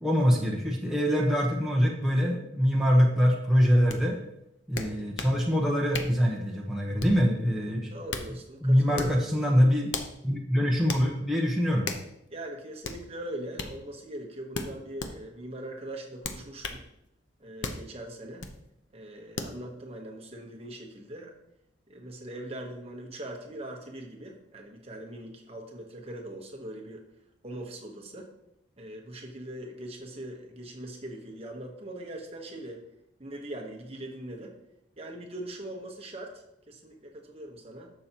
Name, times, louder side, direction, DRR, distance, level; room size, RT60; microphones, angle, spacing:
voice 1, 0.0-4.2 4.7-8.0 8.6-9.9 10.2-11.9, equal, ahead, -3 dB, 1.0 m, -24 dB
sound 1, 3.9-4.0 4.8-5.4 5.9-6.2 7.0-7.3 7.9-8.3 8.9-9.2 9.9-10.1 10.9-11.1 11.8-12.1 12.8-13.0 13.6-13.7 14.5-15.1 16.2-16.8 17.6-17.8 18.4-18.6 19.4-19.6, left 4 dB, 65° left, 0.8 m, -35 dB
voice 2, 7.9-9.1 12.3-16.8 17.4-18.5 18.9-21.3 21.9-27.0 27.4-28.3 28.8-32.8 33.2-34.5 35.0-37.9, right 1 dB, 30° right, 1 dB, 1.2 m, -41 dB
11.0 x 6.9 x 3.0 m, 0.80 s
head